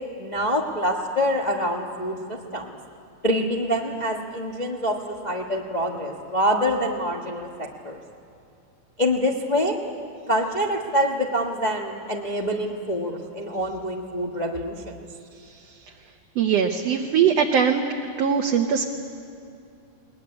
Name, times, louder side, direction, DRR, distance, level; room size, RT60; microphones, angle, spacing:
voice 1, 0.2-2.8 3.2-8.0 9.0-9.7 10.3-15.0, equal, 70° left, 0 dB, 0.4 m, -26 dB
voice 2, 16.4-17.8 18.2-18.8, right 7 dB, 65° right, 2 dB, 1.9 m, -21 dB
20.5 x 20.5 x 9.6 m, 2.5 s
omnidirectional pair, 3.3 m